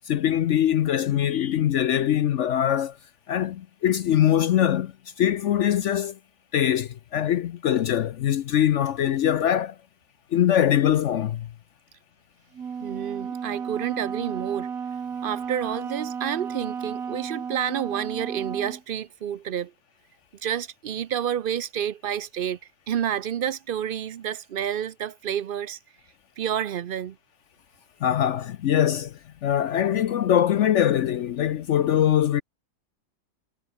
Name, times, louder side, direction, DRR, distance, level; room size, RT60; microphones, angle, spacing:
voice 1, 0.1-3.0 3.3-4.9 5.2-6.2 6.5-9.7 10.3-11.5 28.0-32.4, left 10 dB, 65° left, 0.9 m, -22 dB
Wind instrument woodwind instrument, 12.5-18.8, right 6 dB, 80° right, 2.0 m, -33 dB
voice 2, 12.8-14.7 15.2-19.7 20.4-22.6 22.9-25.8 26.4-27.2, right 9 dB, 60° right, 0.6 m, -29 dB
omnidirectional pair, 1.5 m